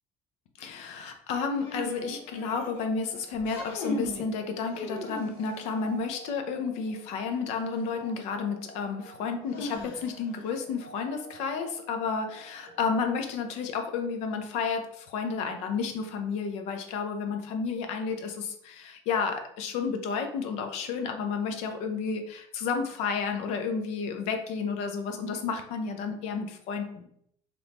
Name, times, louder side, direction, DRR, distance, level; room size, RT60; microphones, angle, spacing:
voice 1, 0.6-27.1, left 5 dB, 60° left, 6 dB, 0.5 m, -31 dB
sound 1, 1.5-14.3, right 2 dB, 25° right, 1.3 m, -51 dB
sound 2, 1.6-2.8 3.4-4.3 4.7-5.6 7.6-7.7 9.5-10.4, left 2 dB, 80° left, 1.1 m, -37 dB
3.4 x 2.6 x 2.9 m, 0.69 s
cardioid pair, 170°, 12 cm